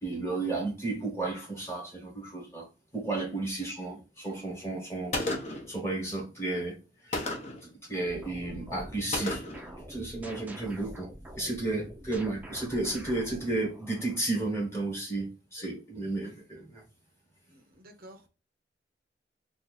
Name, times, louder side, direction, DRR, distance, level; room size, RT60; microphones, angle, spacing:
voice 1, 0.0-2.7 2.9-9.5 9.8-11.1 11.4-16.8, right 2 dB, 15° left, 1.2 m, -33 dB
Gunshot gunfire, 5.1-5.7 7.1-7.7 9.1-9.7, left 2 dB, 40° left, 0.7 m, -32 dB
sound 1, 8.0-14.2, right 1 dB, 10° right, 0.5 m, -46 dB
voice 2, 17.5-18.3, right 1 dB, 55° right, 0.6 m, -50 dB
2.7 x 2.4 x 4.0 m
head